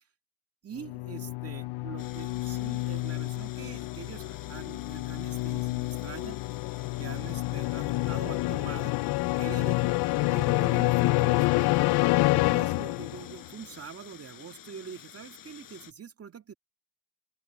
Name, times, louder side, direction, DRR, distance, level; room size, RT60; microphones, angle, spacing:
voice 1, 0.6-6.4 7.0-9.0 9.4-10.0 10.3-11.9 12.3-16.5, right 7 dB, 35° right, 1.9 m, -44 dB
sound 1, 0.8-13.4, left 21 dB, 75° left, 0.7 m, -28 dB
sound 2, 2.0-15.9, left 10 dB, 55° left, 4.6 m, -50 dB
open air
supercardioid pair, 80°, 39 cm